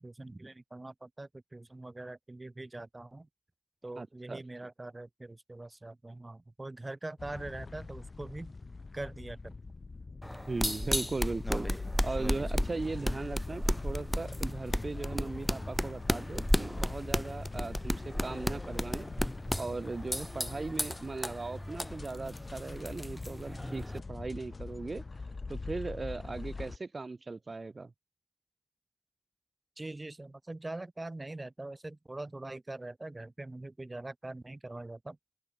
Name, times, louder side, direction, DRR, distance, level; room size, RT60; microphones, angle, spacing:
voice 1, 0.0-3.3 3.8-8.5 8.9-9.5 29.8-35.2, right 2 dB, 45° right, 1.1 m, -43 dB
voice 2, 4.0-4.4 10.5-11.7 12.0-19.1 19.6-25.0 25.5-27.9, right 3 dB, 85° right, 0.8 m, -38 dB
sound 1, 7.2-26.8, left 3 dB, 90° left, 2.8 m, -43 dB
sound 2, 10.2-24.0, equal, 10° left, 0.3 m, -34 dB
open air
wide cardioid pair, 55°, 0 cm